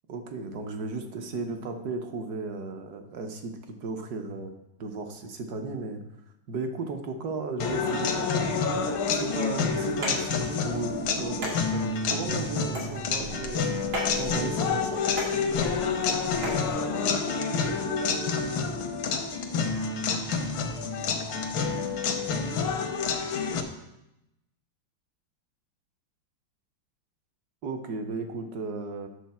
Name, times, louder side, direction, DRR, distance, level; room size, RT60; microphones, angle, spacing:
voice 1, 0.1-3.5 3.8-4.5 4.8-6.0 6.5-8.6 9.1-13.7 14.2-15.0 27.6-29.1, right 3 dB, 60° right, 5 dB, 1.3 m, -35 dB
sound 1, 7.6-23.6, left 5 dB, 80° left, 1.7 m, -28 dB
sound 2, 9.9-16.7, equal, 90° right, 3.0 m, -38 dB
9.3 x 6.7 x 4.3 m, 0.88 s
omnidirectional pair, 2.2 m